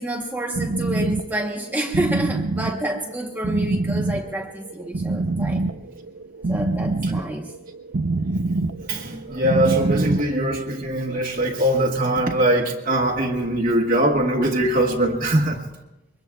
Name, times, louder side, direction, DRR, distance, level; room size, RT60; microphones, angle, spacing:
voice 1, 0.0-5.6 6.5-7.5, right 1 dB, 10° right, 0 dB, 1.0 m, -28 dB
sound 1, 0.5-10.3, right 2 dB, 75° right, 0.6 m, -25 dB
voice 2, 8.8-15.6, right 1 dB, 40° right, -3 dB, 1.4 m, -21 dB
25.0 x 22.5 x 2.3 m, 0.99 s
head